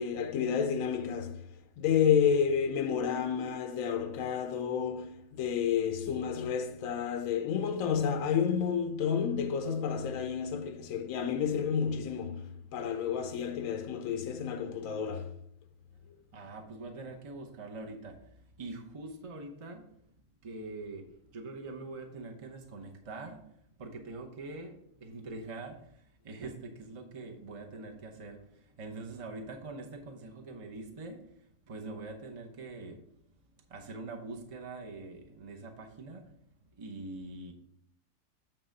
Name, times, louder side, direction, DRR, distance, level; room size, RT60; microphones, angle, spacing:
voice 1, 0.0-1.4 1.8-15.4, left 7 dB, 65° left, 0.9 m, -30 dB
voice 2, 16.3-19.9 20.4-23.4 23.8-33.0 33.7-36.4 36.8-37.5, right 3 dB, 40° right, 0.5 m, -44 dB
9.0 x 3.4 x 5.2 m
omnidirectional pair, 1.8 m